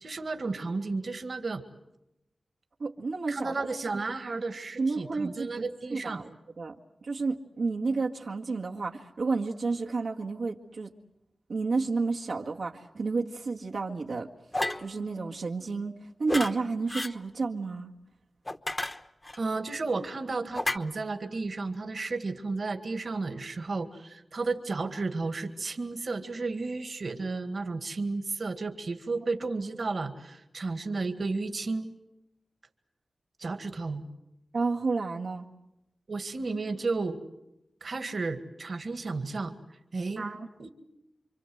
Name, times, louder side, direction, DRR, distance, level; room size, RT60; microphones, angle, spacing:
voice 1, 0.0-1.6 3.3-6.2 19.4-31.9 33.4-34.0 36.1-37.2 37.8-39.5 39.9-40.3 40.6-40.7, right 3 dB, 60° right, 7 dB, 2.0 m, -33 dB
voice 2, 2.8-3.7 4.8-5.6 5.9-6.7 7.0-10.9 11.5-14.3 14.8-15.9 16.2-17.9 34.5-35.5 40.2-40.5, right 4 dB, 80° right, 0 dB, 1.8 m, -31 dB
sound 1, 14.5-14.9 16.3-16.5 16.9-17.1 18.5-19.4 20.5-20.8, left 1 dB, 20° left, 1.1 m, -31 dB
28.5 x 25.5 x 7.9 m, 0.88 s
wide cardioid pair, 105°, 0 cm